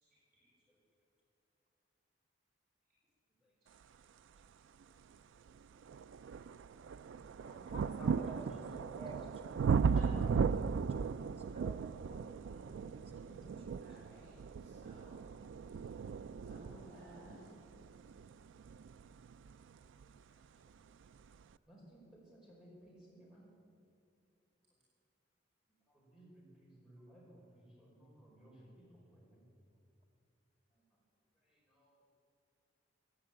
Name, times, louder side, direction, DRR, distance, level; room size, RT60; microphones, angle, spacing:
sound 1, 4.8-4.9 5.5-20.2 21.1-21.2, right 6 dB, 85° right, 0.3 m, -37 dB
voice 1, 7.4-7.9 8.2-13.4, right 2 dB, 30° right, 1 dB, 1.9 m, -54 dB
voice 2, 8.0-8.7 13.3-13.5 19.6-19.7 21.7-23.4 25.9-29.4 31.7-31.9, right 1 dB, 5° right, -5 dB, 4.8 m, -57 dB
voice 3, 9.8-10.3 13.8-14.4 14.6-15.2 16.3-17.4, equal, 50° right, -7 dB, 4.9 m, -54 dB
15.5 x 10.5 x 8.8 m, 2.5 s
head